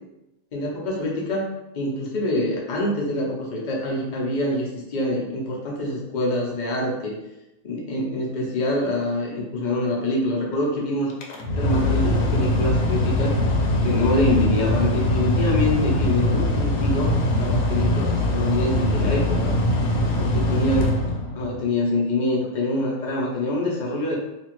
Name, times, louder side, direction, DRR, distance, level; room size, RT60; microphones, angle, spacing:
voice 1, 0.5-1.5 1.7-7.2 7.6-11.1 11.6-13.4 13.8-19.6 20.2-21.0 21.4-24.1, left 1 dB, 45° left, -3 dB, 0.7 m, -25 dB
Mechanical fan, 11.1-21.6, left 1 dB, 90° left, 1.0 m, -22 dB
2.9 x 2.5 x 3.0 m, 0.95 s
omnidirectional pair, 1.3 m